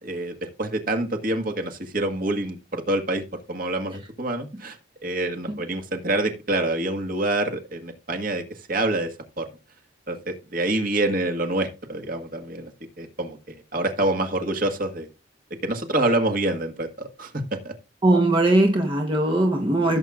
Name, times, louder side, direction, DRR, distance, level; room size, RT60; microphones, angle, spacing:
voice 1, 0.0-4.8 5.0-9.5 10.1-12.7 13.0-15.1 15.6-17.7, right 2 dB, 45° right, 1.7 m, -27 dB
voice 2, 18.0-20.0, right 1 dB, 25° right, 1.1 m, -20 dB
16.0 x 7.4 x 2.5 m
head